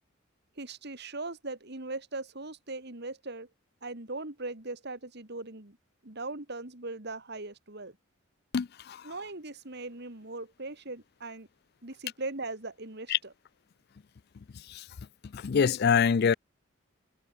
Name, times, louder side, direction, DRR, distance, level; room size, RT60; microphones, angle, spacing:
voice 1, 0.6-3.5 3.8-5.8 6.0-8.0 9.0-11.5 11.8-13.1, right 2 dB, 55° right, 3.0 m, -39 dB
voice 2, 8.5-9.1 13.1-13.2 14.5-14.9 15.3-16.3, left 6 dB, 55° left, 0.4 m, -25 dB
head